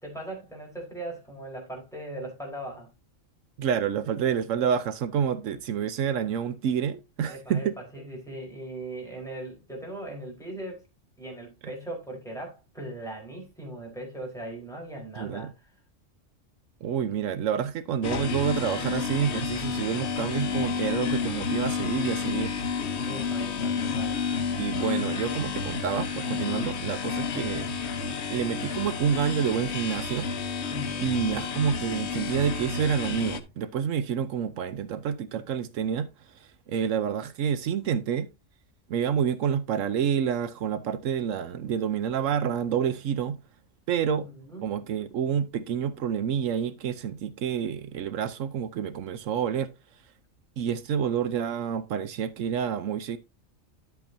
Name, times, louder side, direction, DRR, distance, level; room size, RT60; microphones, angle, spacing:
voice 1, 0.0-2.9 7.3-10.8 11.2-15.8 17.1-17.2 23.0-24.2 30.7-31.1 44.1-44.7, right 1 dB, ahead, 3.9 m, -39 dB
voice 2, 3.6-7.8 15.2-15.5 16.8-22.5 24.6-27.7 28.3-30.3 31.0-38.3 38.9-43.4 43.9-44.3 44.6-49.7 50.6-53.2, right 8 dB, 80° right, 1.1 m, -28 dB
sound 1, 18.0-33.4, left 5 dB, 60° left, 1.2 m, -30 dB
10.5 x 7.9 x 2.6 m
omnidirectional pair, 1.3 m